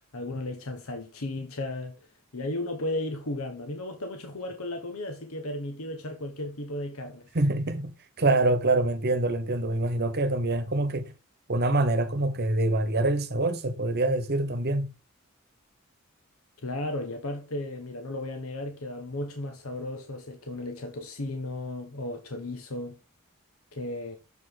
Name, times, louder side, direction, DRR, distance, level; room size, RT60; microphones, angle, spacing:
voice 1, 0.1-1.9 2.3-7.3 16.6-23.0 23.7-24.2, left 1 dB, 75° left, 1.2 m, -35 dB
voice 2, 7.3-7.9 8.2-11.1 11.5-14.9, right 2 dB, 50° right, 1.1 m, -25 dB
7.1 x 5.0 x 4.1 m
head